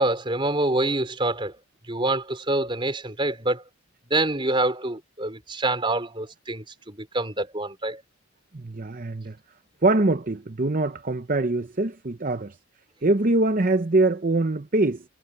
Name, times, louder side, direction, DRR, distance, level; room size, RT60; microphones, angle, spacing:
voice 1, 0.0-1.5 1.9-3.6 4.1-8.0, right 2 dB, 20° right, 4.7 m, -26 dB
voice 2, 8.5-9.4 9.8-12.6 13.0-15.0, right 2 dB, 40° right, 0.7 m, -23 dB
head